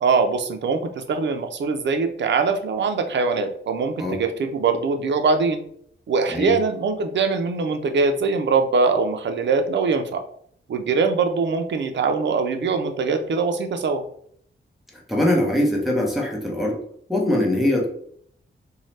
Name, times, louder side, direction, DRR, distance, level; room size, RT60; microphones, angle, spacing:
voice 1, 0.0-5.6 6.1-10.2 10.7-14.0, right 4 dB, 65° right, 6 dB, 0.4 m, -22 dB
voice 2, 15.1-16.8 17.1-17.9, left 1 dB, ahead, -2 dB, 0.7 m, -22 dB
2.7 x 2.0 x 3.1 m, 0.63 s
wide cardioid pair, 120°, 20 cm